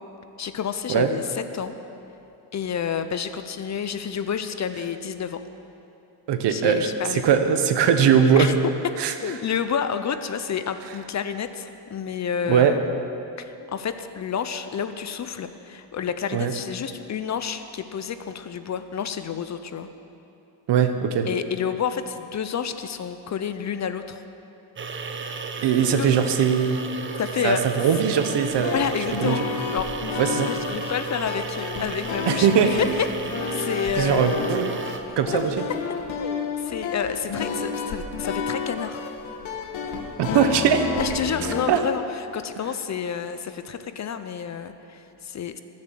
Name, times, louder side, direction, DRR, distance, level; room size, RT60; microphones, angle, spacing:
voice 1, 0.4-1.8 2.5-5.4 6.5-7.4 8.4-8.5 9.2-12.9 13.4-19.9 21.2-24.2 26.0-26.1 27.2-27.6 28.7-29.9 30.5-33.1 33.5-34.5 35.3-35.4 36.1-39.0 41.0-42.0 42.3-45.6, left 7 dB, 35° left, 10 dB, 0.6 m, -29 dB
voice 2, 6.3-8.5 9.0-9.1 12.5-12.7 16.3-16.5 20.7-21.3 25.6-26.8 27.4-28.7 29.2-29.4 30.2-30.5 32.3-32.8 34.0-34.8 35.2-35.5 40.2-40.9 41.7-41.8, right 8 dB, 60° right, 7 dB, 1.2 m, -20 dB
sound 1, 24.8-35.0, right 4 dB, 25° right, 0.9 m, -34 dB
sound 2, 28.2-41.6, left 5 dB, 75° left, 1.5 m, -31 dB
19.5 x 7.5 x 7.6 m, 2.8 s
cardioid pair, 120°, 47 cm